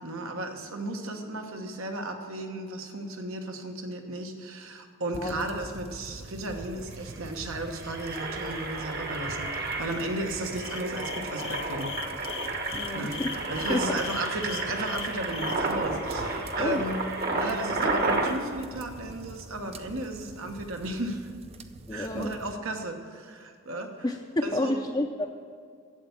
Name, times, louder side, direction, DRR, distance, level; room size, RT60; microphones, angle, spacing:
voice 1, 0.0-9.5 9.8-11.9 12.9-13.2 13.5-17.0 17.3-21.3 21.9-24.1 24.4-24.8, right 1 dB, 75° right, 4 dB, 1.3 m, -34 dB
sound 1, 5.1-22.5, right 2 dB, 30° right, 0.5 m, -45 dB
Engine, 6.6-6.7 6.9-7.1 7.6-18.3, right 2 dB, 45° right, 1.3 m, -31 dB
sound 2, 10.6-15.6, left 10 dB, 55° left, 0.7 m, -39 dB
voice 2, 12.7-13.3 13.7-14.0 16.6-16.8 21.9-22.3 24.0-25.3, left 1 dB, 20° left, 1 dB, 0.5 m, -30 dB
12.5 x 8.2 x 7.2 m, 2.1 s
head